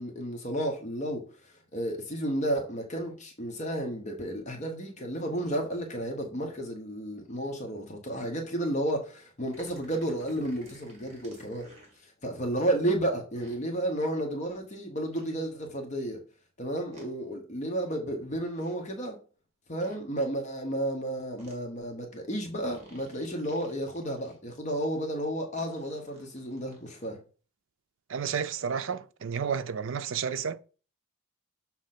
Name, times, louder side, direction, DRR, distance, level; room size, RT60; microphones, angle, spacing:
voice 1, 0.0-11.7 12.0-16.2 16.6-19.2 19.7-27.2, right 1 dB, 35° left, 1.0 m, -32 dB
sound 1, 9.5-12.0 13.3-13.6 15.1-15.3 16.9-17.1 18.4-18.8 19.8-20.0 21.4-21.6 22.6-24.4 25.6-27.1, right 1 dB, 35° right, 2.0 m, -54 dB
voice 2, 28.1-30.6, right 7 dB, 65° right, 0.4 m, -31 dB
6.4 x 3.0 x 5.8 m
head